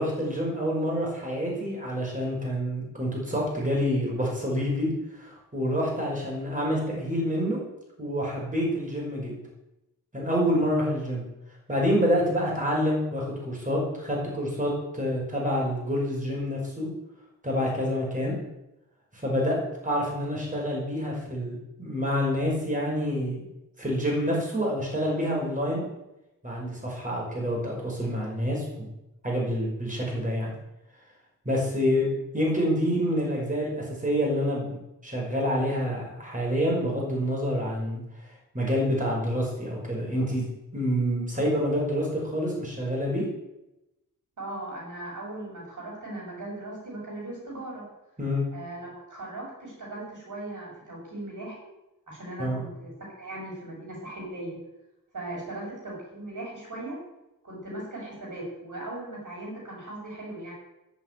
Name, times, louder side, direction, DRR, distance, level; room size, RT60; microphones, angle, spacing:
voice 1, 0.0-7.6 8.0-9.4 10.1-11.2 11.7-16.9 17.4-18.4 19.1-23.4 23.8-25.8 26.4-28.9 29.2-30.5 31.5-32.1 32.3-38.0 38.5-40.5 40.7-43.3 48.2-48.4 52.4-52.6, equal, 25° right, -3 dB, 5.9 m, -27 dB
voice 2, 44.4-47.9 48.5-51.6 52.1-54.6 55.1-57.0 57.4-60.5, right 2 dB, 65° right, -3 dB, 6.8 m, -38 dB
10.5 x 8.5 x 9.6 m, 0.92 s
wide cardioid pair, 85°, 33 cm